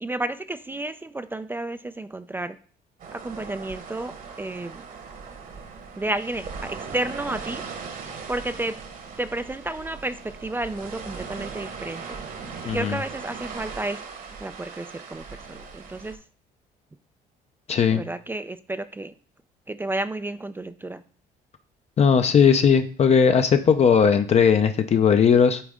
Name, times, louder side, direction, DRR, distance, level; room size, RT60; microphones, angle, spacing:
voice 1, 0.0-2.6 3.1-4.8 6.0-7.6 8.3-8.8 9.2-12.2 12.7-14.0 14.4-16.2 17.9-19.1 19.7-21.0, right 2 dB, 10° right, 11 dB, 0.3 m, -31 dB
sound 1, 3.0-16.2, right 5 dB, 55° right, 1.3 m, -39 dB
voice 2, 12.6-13.0 17.7-18.0 22.0-25.6, left 6 dB, 40° left, 7 dB, 0.6 m, -18 dB
8.4 x 4.0 x 3.7 m, 0.42 s
cardioid pair, 110°, 17 cm